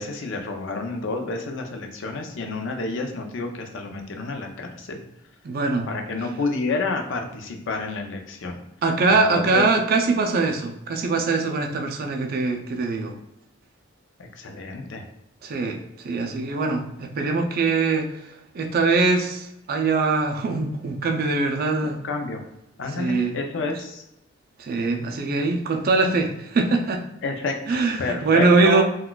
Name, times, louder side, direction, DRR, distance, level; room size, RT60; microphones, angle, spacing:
voice 1, 0.0-5.0 5.9-8.6 9.1-9.6 14.3-15.0 22.0-22.4 22.8-24.0 27.2-28.8, left 3 dB, 65° left, 4 dB, 0.5 m, -29 dB
voice 2, 5.4-5.9 8.8-13.1 15.4-15.8 16.0-18.1 18.5-22.0 23.0-23.4 24.6-27.0 27.7-28.8, right 3 dB, 50° right, 3 dB, 0.4 m, -22 dB
3.8 x 2.3 x 2.3 m, 0.82 s
head